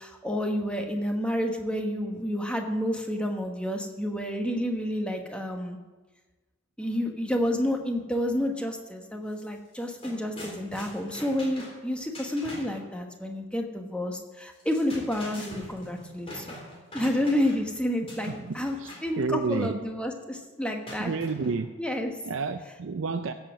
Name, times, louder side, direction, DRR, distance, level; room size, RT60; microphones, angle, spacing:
voice 1, 0.0-5.8 6.8-16.5 16.9-21.1 21.8-22.1, left 1 dB, 5° left, 1.2 m, -30 dB
sound 1, 9.3-9.5 9.7-12.8 14.5-17.7 18.1-19.1 20.8-21.8, left 1 dB, 30° left, 3.9 m, -43 dB
voice 2, 18.4-18.9 19.2-19.8 21.0-21.7 22.3-23.3, right 4 dB, 75° right, 0.5 m, -30 dB
16.0 x 7.2 x 6.2 m
head